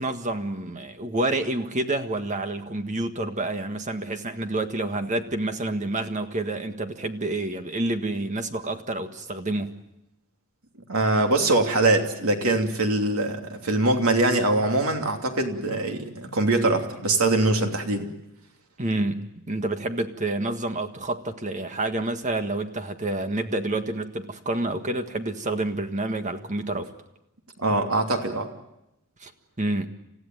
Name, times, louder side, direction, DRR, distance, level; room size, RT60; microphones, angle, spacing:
voice 1, 0.0-9.7 18.8-26.9 29.2-29.3 29.6-29.9, right 2 dB, 35° right, 7 dB, 1.7 m, -28 dB
voice 2, 10.9-18.1 27.6-28.5, right 2 dB, 75° right, 4 dB, 2.9 m, -23 dB
29.0 x 15.5 x 9.2 m, 0.89 s
head